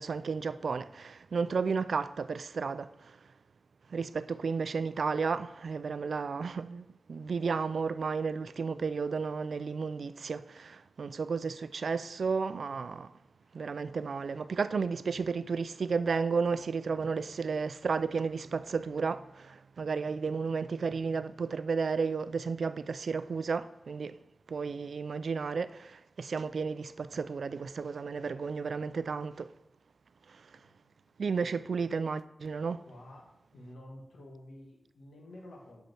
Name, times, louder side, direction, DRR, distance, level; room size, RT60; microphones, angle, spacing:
voice 1, 0.0-3.2 3.9-13.1 13.5-24.2 24.5-29.5 30.3-30.5 31.2-32.8, right 5 dB, 75° right, 0.3 m, -33 dB
voice 2, 30.5-31.0 32.9-33.3 33.5-35.8, left 1 dB, 90° left, 1.5 m, -51 dB
5.7 x 5.2 x 6.1 m
cardioid pair, 60°, 0 cm